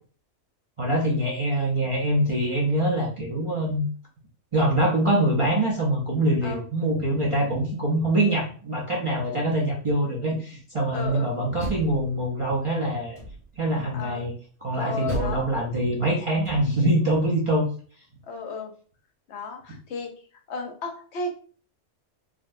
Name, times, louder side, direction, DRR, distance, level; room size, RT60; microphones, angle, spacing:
voice 1, 0.8-3.8 4.5-13.2 13.6-14.3 14.6-17.7, right 1 dB, 35° right, -3 dB, 0.5 m, -24 dB
voice 2, 10.9-11.3 13.9-14.2 14.7-15.5 18.3-18.7 19.3-20.1 20.5-21.3, left 3 dB, 70° left, 4 dB, 0.9 m, -34 dB
Door, 11.3-12.6 13.1-13.7 15.1-17.0, right 2 dB, 60° right, 1.6 m, -36 dB
3.7 x 2.2 x 2.5 m, 0.42 s
omnidirectional pair, 1.2 m